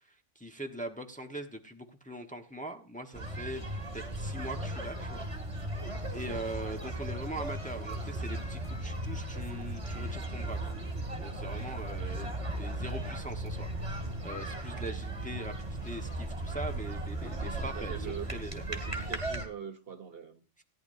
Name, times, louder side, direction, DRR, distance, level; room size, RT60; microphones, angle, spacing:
voice 1, 0.0-3.6 3.9-5.3 5.5-5.6 6.1-10.7 11.1-18.6, right 1 dB, 5° left, 3 dB, 1.1 m, -42 dB
sound 1, 3.1-19.5, right 1 dB, 25° right, 2.0 m, -36 dB
voice 2, 17.1-20.4, right 8 dB, 55° right, 8 dB, 1.1 m, -44 dB
18.0 x 10.5 x 2.7 m, 0.31 s
omnidirectional pair, 1.3 m